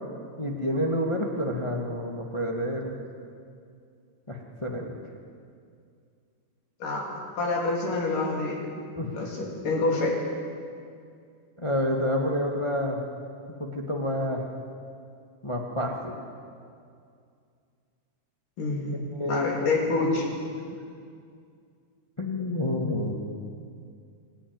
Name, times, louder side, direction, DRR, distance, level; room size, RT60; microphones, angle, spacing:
voice 1, 0.4-3.0 4.3-4.9 9.0-9.3 11.6-13.0 13.6-14.4 15.4-16.1 19.1-19.6 20.1-20.3 22.2-23.1, left 1 dB, 45° left, 1 dB, 0.3 m, -29 dB
voice 2, 7.4-8.7 9.1-10.2 18.6-19.0 19.3-20.3, left 3 dB, 75° left, -1 dB, 4.8 m, -27 dB
24.0 x 12.5 x 9.5 m, 2.3 s
omnidirectional pair, 3.8 m